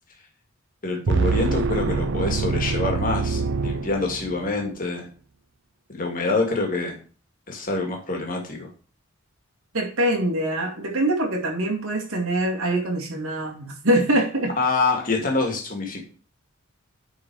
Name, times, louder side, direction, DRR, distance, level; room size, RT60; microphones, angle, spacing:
voice 1, 0.8-5.1 5.9-7.0 7.5-8.7 14.6-16.0, left 3 dB, 40° left, 1 dB, 2.0 m, -26 dB
sound 1, 1.1-4.5, right 4 dB, 55° right, 0.5 m, -25 dB
voice 2, 9.7-14.5, right 1 dB, 75° right, 1 dB, 2.2 m, -24 dB
9.5 x 4.3 x 4.7 m, 0.39 s
head